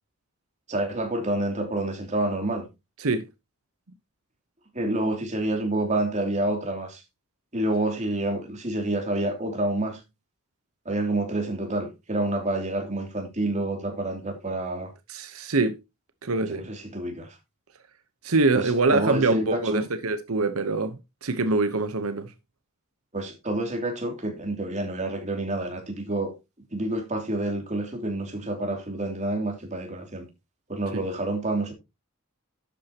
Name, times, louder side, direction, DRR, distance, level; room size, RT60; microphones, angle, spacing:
voice 1, 0.7-2.7 4.7-7.0 7.5-10.0 10.8-14.9 16.5-17.4 18.5-19.9 23.1-26.3 26.7-30.3 30.7-31.7, right 1 dB, 35° right, 2.8 m, -28 dB
voice 2, 15.1-15.8 16.2-16.6 18.2-22.3 30.9-31.0, right 3 dB, 90° right, 1.0 m, -24 dB
12.0 x 8.3 x 2.9 m
head